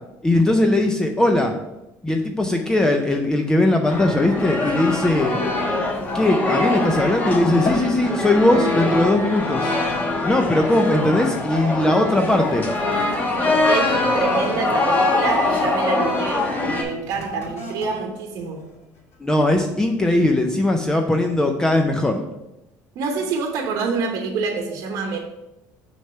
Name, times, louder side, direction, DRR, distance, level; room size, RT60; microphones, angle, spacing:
voice 1, 0.2-1.5 2.0-5.4 6.1-9.7 10.2-12.6 19.2-22.2, left 1 dB, 10° left, 3 dB, 0.4 m, -19 dB
sound 1, 3.9-16.8, left 2 dB, 25° left, 1.2 m, -23 dB
sound 2, 4.6-7.2 7.5-8.0 8.4-8.7 9.4-9.6 10.4-16.2 17.0-19.3 19.9-20.0, left 2 dB, 45° left, 2.4 m, -40 dB
voice 2, 13.7-18.6 22.9-25.2, right 4 dB, 60° right, 2 dB, 0.9 m, -27 dB
6.3 x 3.3 x 5.6 m, 0.91 s
cardioid pair, 155°, 7 cm